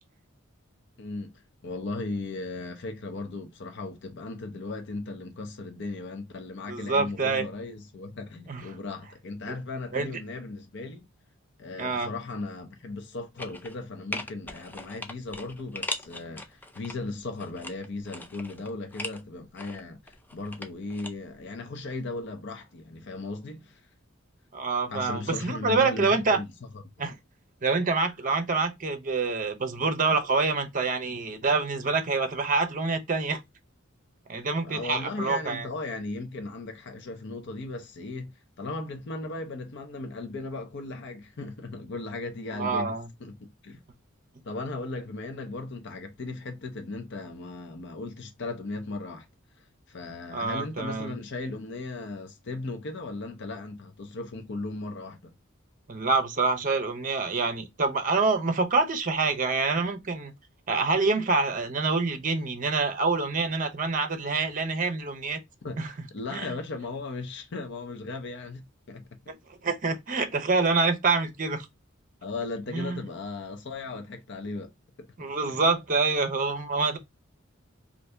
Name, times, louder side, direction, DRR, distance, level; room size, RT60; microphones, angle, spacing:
voice 1, 1.0-1.3 1.6-11.1 11.6-23.8 24.9-26.8 34.6-38.3 38.6-42.9 43.2-43.8 44.4-49.3 49.9-55.3 65.6-69.0 69.7-69.8 72.2-74.7 75.0-75.1 75.5-75.6, left 3 dB, 60° left, 0.6 m, -37 dB
voice 2, 6.7-7.4 8.5-8.6 9.9-10.1 11.8-12.1 24.5-26.4 27.0-27.1 27.6-33.4 34.3-35.7 42.5-43.1 50.3-51.1 55.9-60.3 60.7-65.4 65.8-65.9 66.3-66.5 69.6-71.7 72.7-73.0 75.2-77.0, right 3 dB, 40° right, 0.6 m, -26 dB
sound 1, 13.4-13.8 14.1-16.9 17.4-19.2 19.6-21.1 21.4-21.5, left 2 dB, 10° left, 0.4 m, -39 dB
2.7 x 2.6 x 3.2 m
head